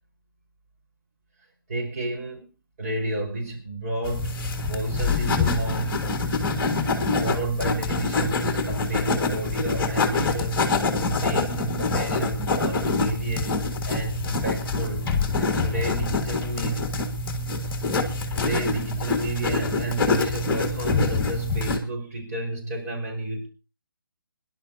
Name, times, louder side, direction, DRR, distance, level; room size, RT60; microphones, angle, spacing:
voice 1, 1.7-2.5 2.8-6.0 6.8-13.6 13.8-15.1 15.4-16.9 18.3-23.5, right 1 dB, 45° right, 0 dB, 4.6 m, -31 dB
sound 1, 4.0-21.8, left 3 dB, 15° left, 1.8 m, -25 dB
27.0 x 11.0 x 2.7 m, 0.30 s
figure-of-eight pair, 155°, 12 cm